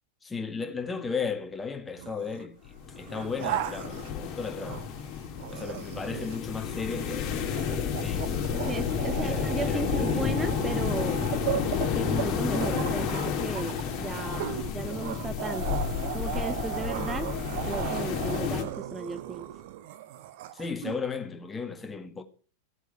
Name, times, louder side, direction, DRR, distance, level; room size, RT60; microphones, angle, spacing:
voice 1, 0.2-4.9 5.5-8.4 9.1-10.3 20.5-22.2, left 5 dB, 15° left, 1.6 m, -35 dB
sound 1, 2.0-2.4 2.9-5.0 5.4-21.0, right 13 dB, 50° right, 1.5 m, -37 dB
sound 2, 2.7-18.6, left 7 dB, 35° left, 3.2 m, -31 dB
voice 2, 8.5-11.3 11.9-15.8 16.1-17.4 17.7-19.5, right 4 dB, 10° right, 0.8 m, -35 dB
16.0 x 8.2 x 5.6 m
figure-of-eight pair, 90°, 0 cm